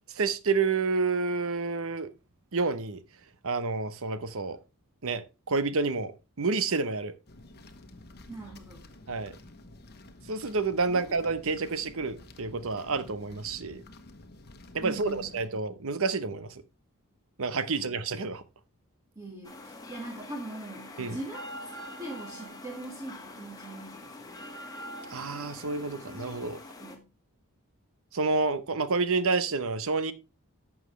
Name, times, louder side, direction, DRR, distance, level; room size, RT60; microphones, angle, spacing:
voice 1, 0.2-2.1 2.5-3.0 3.4-4.6 5.0-6.1 6.4-7.1 9.1-9.3 10.3-13.8 14.7-16.6 17.4-18.4 21.0-21.2 25.1-26.6 28.1-30.1, right 4 dB, 65° right, 0.9 m, -29 dB
sound 1, 7.3-15.5, left 2 dB, 45° left, 1.2 m, -51 dB
voice 2, 8.3-8.8 10.9-11.0 14.8-15.5 17.8-18.0 19.2-21.4 22.0-24.5 26.8-27.0, right 2 dB, 15° right, 1.7 m, -41 dB
sound 2, 19.4-27.0, left 1 dB, 15° left, 1.7 m, -44 dB
11.5 x 7.3 x 3.2 m
head